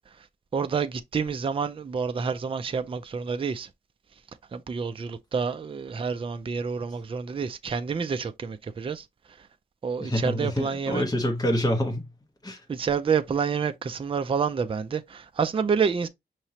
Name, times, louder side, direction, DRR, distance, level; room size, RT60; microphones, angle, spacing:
voice 1, 0.5-3.7 4.5-9.0 9.8-11.0 12.7-16.1, right 6 dB, 30° right, 0.4 m, -28 dB
voice 2, 10.0-12.1 12.4-12.6, equal, 20° left, 1.3 m, -26 dB
5.7 x 3.1 x 2.8 m
wide cardioid pair, 160°, 19 cm